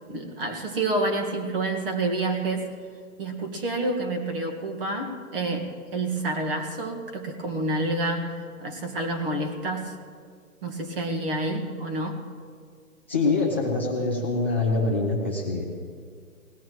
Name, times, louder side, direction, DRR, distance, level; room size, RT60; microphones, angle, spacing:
voice 1, 0.1-2.7 3.2-10.0 10.6-12.3, right 2 dB, 35° right, 4 dB, 1.7 m, -28 dB
voice 2, 13.1-15.6, left 3 dB, 10° left, -6 dB, 0.5 m, -24 dB
20.0 x 16.5 x 3.1 m, 2.1 s
hypercardioid pair, 160°, 45 cm